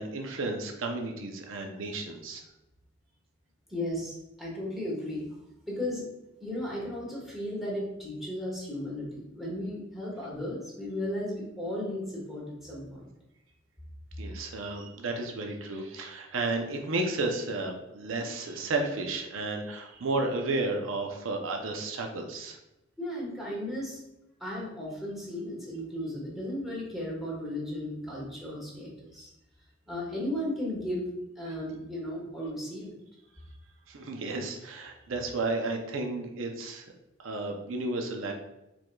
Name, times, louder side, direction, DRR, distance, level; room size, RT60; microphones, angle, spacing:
voice 1, 0.0-2.4 14.2-22.6 33.9-36.8 37.2-38.3, right 2 dB, 75° right, 3 dB, 0.6 m, -32 dB
voice 2, 3.7-5.3 5.6-6.1 6.4-13.0 23.0-24.0 24.4-29.3 29.9-31.1 31.4-32.9, left 1 dB, ahead, -5 dB, 1.3 m, -35 dB
4.7 x 3.8 x 2.3 m, 0.91 s
head